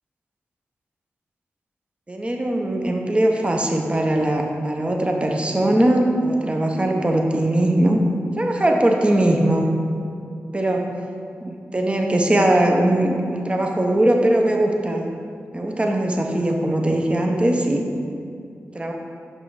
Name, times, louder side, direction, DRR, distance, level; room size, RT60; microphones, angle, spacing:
voice 1, 2.1-8.0 8.4-9.7 10.5-11.0 11.4-15.1 15.5-17.8 18.7-18.9, right 1 dB, 25° right, 2 dB, 0.7 m, -20 dB
6.0 x 5.4 x 4.0 m, 2.4 s
cardioid pair, 65°, 5 cm